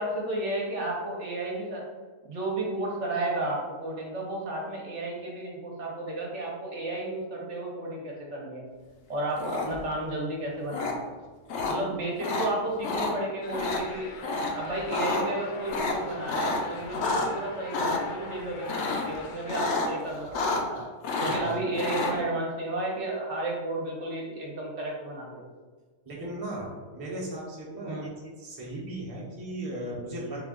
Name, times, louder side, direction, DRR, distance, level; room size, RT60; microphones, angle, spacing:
voice 1, 0.0-1.8 2.3-8.7 9.1-11.1 11.7-14.1 14.5-20.8 21.2-25.4 27.9-28.1, right 2 dB, 60° right, -2 dB, 1.1 m, -32 dB
sound 1, 9.4-9.9 10.7-10.9 11.5-11.7 12.2-12.5 12.8-13.1 13.5-13.8 14.2-14.5 14.8-15.2 15.7-17.3 17.7-18.0 18.7-19.1 19.5-19.9 20.2-20.8 21.0-22.1, left 3 dB, 65° left, 0.8 m, -29 dB
sound 2, 13.4-19.7, left 3 dB, 85° left, 0.4 m, -42 dB
voice 2, 21.2-21.6 22.2-22.3 26.0-28.1 28.4-30.4, right 1 dB, 20° right, -5 dB, 0.7 m, -37 dB
4.1 x 2.4 x 3.6 m, 1.4 s
omnidirectional pair, 1.4 m